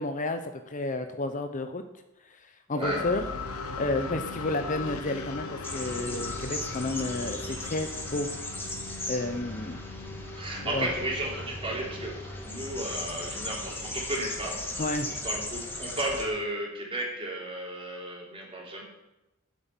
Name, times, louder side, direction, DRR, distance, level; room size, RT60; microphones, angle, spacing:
voice 1, 0.0-1.8 2.3-3.2 3.8-8.3 9.1-9.8 10.6-10.9 14.8-15.1, left 2 dB, 35° left, 8 dB, 0.7 m, -31 dB
voice 2, 2.7-3.1 10.3-14.8 15.2-18.8, right 1 dB, 25° right, -3 dB, 3.6 m, -34 dB
sound 1, 2.8-14.6, left 3 dB, 85° left, 1.3 m, -39 dB
sound 2, 5.6-16.2, left 1 dB, 10° left, 1.9 m, -38 dB
9.7 x 8.2 x 8.2 m, 0.97 s
head